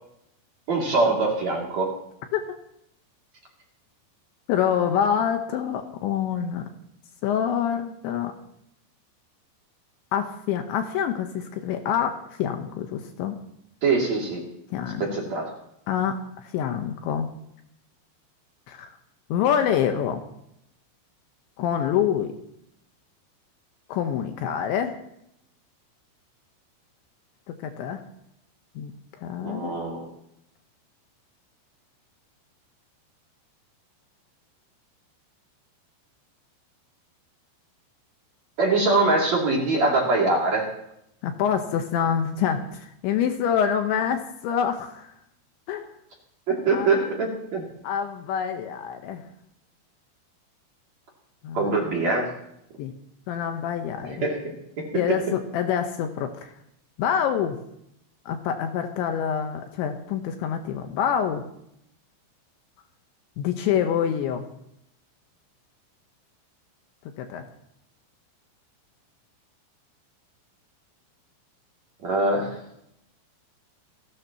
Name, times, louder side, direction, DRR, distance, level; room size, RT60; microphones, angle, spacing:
voice 1, 0.7-2.0 13.8-14.4 15.0-15.5 29.4-30.1 38.6-40.7 46.5-47.6 51.5-52.3 54.1-55.2 72.0-72.6, right 3 dB, 40° right, -2 dB, 3.3 m, -23 dB
voice 2, 4.5-6.7 7.2-8.3 10.1-13.4 14.7-15.1 15.9-17.3 18.7-18.9 19.3-20.2 21.6-22.3 23.9-25.0 27.5-28.0 28.8-28.9 29.2-29.8 41.2-45.1 45.7-45.9 46.7-46.9 47.8-49.2 51.4-51.7 52.8-52.9 53.3-54.2 54.9-56.5 57.0-57.6 58.3-61.4 63.4-64.5 67.2-67.4, left 8 dB, 75° left, 5 dB, 3.1 m, -26 dB
29.5 x 12.5 x 3.0 m, 0.76 s
omnidirectional pair, 5.8 m